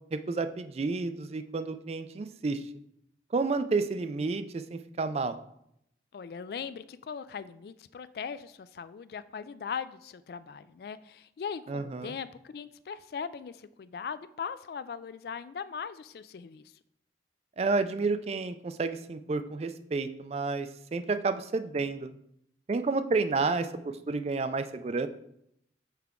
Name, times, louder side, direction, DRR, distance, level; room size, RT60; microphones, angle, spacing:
voice 1, 0.1-2.6 3.3-5.4 11.7-12.1 17.6-22.1 22.7-25.1, right 3 dB, 35° right, 10 dB, 0.3 m, -30 dB
voice 2, 6.1-13.5 13.8-16.6, left 6 dB, 60° left, 14 dB, 0.3 m, -39 dB
5.8 x 5.7 x 3.6 m, 0.75 s
head